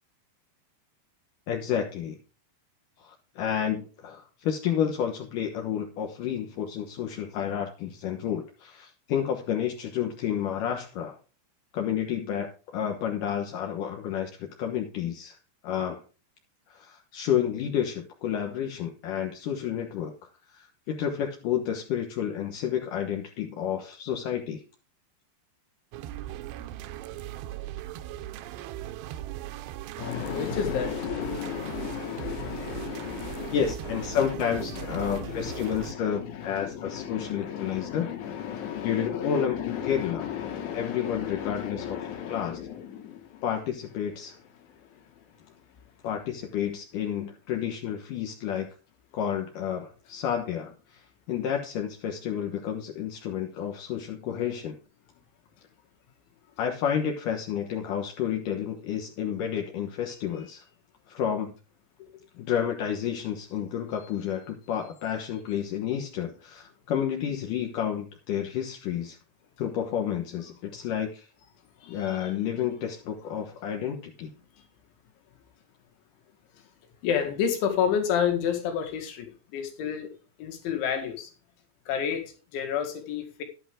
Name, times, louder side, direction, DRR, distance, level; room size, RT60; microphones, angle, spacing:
voice 1, 1.5-2.2 3.0-11.2 11.7-15.4 15.6-16.0 16.7-20.1 20.5-24.6 33.5-38.1 38.8-40.3 40.7-42.6 43.4-44.4 46.0-48.7 49.1-54.8 56.6-60.6 61.1-61.5 62.4-69.2 69.6-71.3 71.9-74.3, left 9 dB, 65° left, 2.2 m, -30 dB
sound 1, 25.9-35.9, right 13 dB, 80° right, 2.7 m, -38 dB
voice 2, 30.0-43.4 44.6-45.1 62.0-62.1 71.8-72.3 74.6-74.7 77.0-80.1 80.4-81.3 81.9-83.4, left 8 dB, 90° left, 4.3 m, -32 dB
12.0 x 10.5 x 3.7 m
omnidirectional pair, 5.2 m